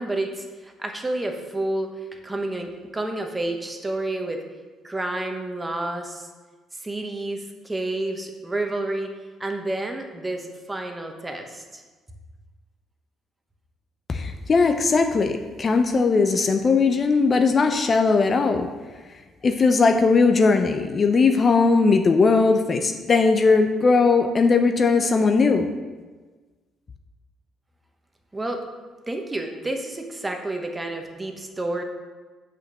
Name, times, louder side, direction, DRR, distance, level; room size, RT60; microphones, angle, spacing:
voice 1, 0.0-4.4 4.8-6.3 6.7-9.1 9.4-11.8 28.3-28.6 29.1-31.8, right 2 dB, 15° right, 4 dB, 1.2 m, -30 dB
voice 2, 14.1-18.7 19.4-25.7, left 4 dB, 40° left, 6 dB, 0.6 m, -19 dB
6.3 x 5.2 x 6.6 m, 1.3 s
cardioid pair, 85°, 0 cm